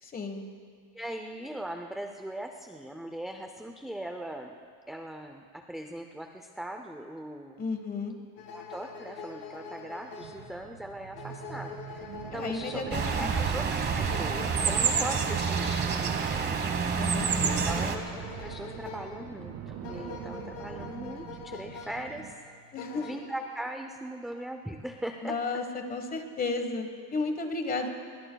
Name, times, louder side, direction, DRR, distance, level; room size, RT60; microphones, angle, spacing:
voice 1, 0.0-0.5 7.6-8.2 12.3-13.5 16.9-17.9 22.7-23.1 25.2-27.9, left 3 dB, 25° left, 6 dB, 1.3 m, -33 dB
voice 2, 0.9-4.5 4.9-7.7 8.5-16.6 17.4-22.3 22.9-25.3, right 1 dB, ahead, 4 dB, 0.4 m, -40 dB
sound 1, 8.4-23.1, left 4 dB, 75° left, 2.8 m, -45 dB
sound 2, 10.2-22.3, right 9 dB, 75° right, 1.9 m, -44 dB
sound 3, 12.9-18.0, right 6 dB, 30° right, 1.1 m, -28 dB
25.0 x 22.0 x 2.3 m, 2.1 s
cardioid pair, 160°, 35 cm